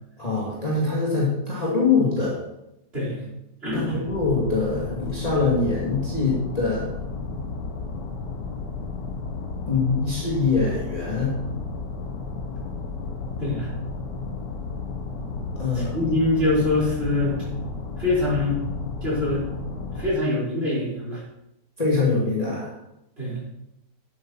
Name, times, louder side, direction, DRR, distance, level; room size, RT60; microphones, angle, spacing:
voice 1, 0.2-2.4 3.7-6.9 9.7-11.4 15.6-16.1 21.8-22.7, left 4 dB, 20° left, -6 dB, 2.3 m, -23 dB
voice 2, 3.6-4.0 13.4-13.7 15.7-17.4 18.0-18.6 19.0-19.5 19.9-21.2 23.2-23.4, left 2 dB, 35° right, -7 dB, 5.0 m, -24 dB
sound 1, 4.1-20.1, left 4 dB, 90° left, 2.1 m, -33 dB
11.5 x 8.6 x 4.3 m, 0.86 s
omnidirectional pair, 1.8 m